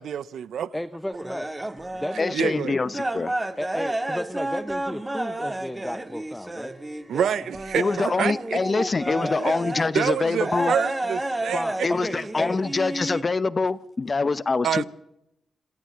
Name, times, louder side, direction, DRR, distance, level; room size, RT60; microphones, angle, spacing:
voice 1, 0.0-0.7 2.3-2.7 7.1-8.8 9.4-9.5 9.9-11.6 14.6-14.9, right 9 dB, 80° right, 0.7 m, -27 dB
voice 2, 0.7-1.5 1.9-2.6 3.6-6.7 9.1-9.3 11.5-12.6, left 1 dB, 5° left, 0.8 m, -33 dB
sound 1, 1.1-2.4 2.7-9.9 10.4-13.2, right 1 dB, 20° right, 1.7 m, -31 dB
voice 3, 2.2-3.3 7.8-10.7 11.8-14.9, left 4 dB, 35° left, 0.9 m, -25 dB
27.5 x 13.0 x 7.4 m
cardioid pair, 70°, 0 cm